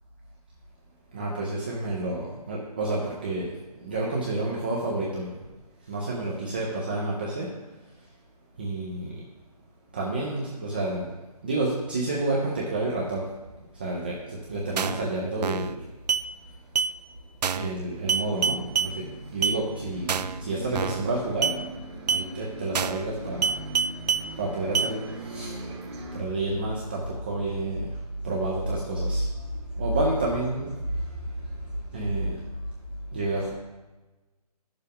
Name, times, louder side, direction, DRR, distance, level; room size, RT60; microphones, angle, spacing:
voice 1, 1.1-3.5 3.8-5.3 5.9-7.5 8.6-9.2 9.9-11.1 11.4-13.2 13.8-15.8 17.5-19.1 19.3-21.6 22.1-23.5 24.4-25.6 26.1-27.9 28.2-30.7 31.9-32.4 33.1-33.5, right 2 dB, 15° right, -4 dB, 0.4 m, -29 dB
sound 1, 14.8-15.1 15.4-15.7 16.1-16.3 16.8-16.9 17.4-17.7 18.1-18.9 19.4-19.6 20.1-20.4 20.8-21.1 21.4-21.6 22.1-22.3 22.8-23.1 23.4-24.3 24.8-24.9, right 6 dB, 85° right, 0.4 m, -26 dB
Bus, 17.9-26.2, right 2 dB, 40° right, 1.1 m, -40 dB
9.1 x 6.7 x 3.5 m, 1.1 s
hypercardioid pair, 165°, 20 cm